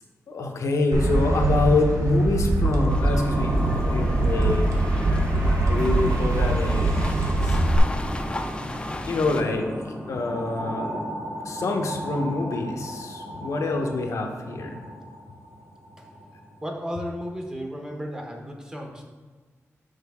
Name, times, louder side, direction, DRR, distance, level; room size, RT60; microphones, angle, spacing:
voice 1, 0.3-4.8 5.3-7.1 7.4-7.6 9.1-9.6 10.1-10.9 11.4-14.8, left 2 dB, 80° left, 2 dB, 0.7 m, -26 dB
sound 1, 0.9-7.8, right 2 dB, 90° right, 0.8 m, -23 dB
sound 2, 2.6-16.6, right 1 dB, 50° right, 1.1 m, -34 dB
sound 3, 2.9-9.4, left 2 dB, 20° left, 0.4 m, -35 dB
voice 2, 16.6-19.0, equal, 15° right, 1 dB, 0.7 m, -34 dB
6.5 x 4.6 x 3.5 m, 1.4 s
wide cardioid pair, 175°, 5 cm